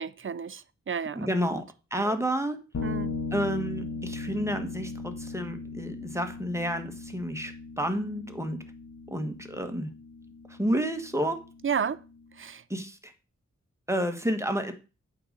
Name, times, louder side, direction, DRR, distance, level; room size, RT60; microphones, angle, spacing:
voice 1, 0.0-1.3 2.0-2.1 2.8-3.1 11.6-12.0 12.4-12.6, right 7 dB, 45° right, 0.6 m, -32 dB
voice 2, 1.1-1.6 1.9-2.6 3.3-8.6 9.1-9.9 10.6-11.4 12.7-13.1 13.9-14.7, equal, 10° right, 1.4 m, -30 dB
sound 1, 2.7-12.2, left 3 dB, 70° left, 1.5 m, -38 dB
8.6 x 3.9 x 6.4 m
wide cardioid pair, 65°, 29 cm